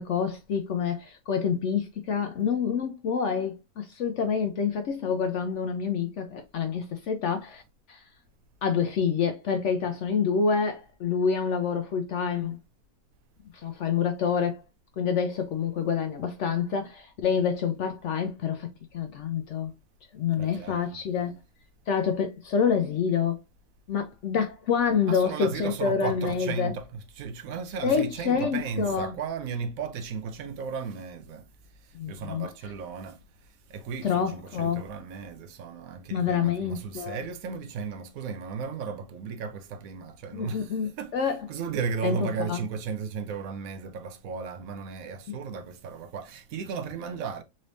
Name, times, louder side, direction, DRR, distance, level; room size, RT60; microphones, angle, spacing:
voice 1, 0.0-7.6 7.9-8.0 8.6-12.6 13.5-14.6 15.0-19.7 20.1-21.3 21.9-23.4 23.9-26.7 27.8-29.1 31.9-32.5 34.0-34.9 36.1-37.2 40.3-41.5 42.0-42.6, left 6 dB, 75° left, 0.6 m, -27 dB
voice 2, 20.4-21.0 25.0-31.5 31.8-41.2 41.5-47.4, right 5 dB, 65° right, 1.0 m, -35 dB
4.0 x 3.3 x 2.6 m
omnidirectional pair, 1.8 m